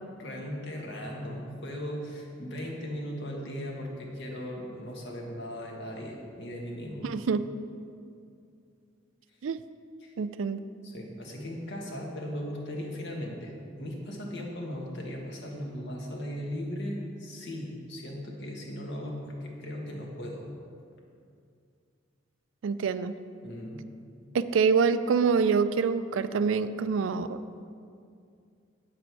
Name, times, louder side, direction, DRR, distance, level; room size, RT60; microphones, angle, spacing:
voice 1, 0.2-7.1 10.0-10.1 10.8-20.5 23.4-23.8, equal, 60° left, -1 dB, 1.6 m, -37 dB
voice 2, 7.0-7.4 9.4-9.6 10.2-10.6 22.6-23.1 24.3-27.6, right 5 dB, 70° right, 13 dB, 0.4 m, -26 dB
8.7 x 7.6 x 4.7 m, 2.4 s
head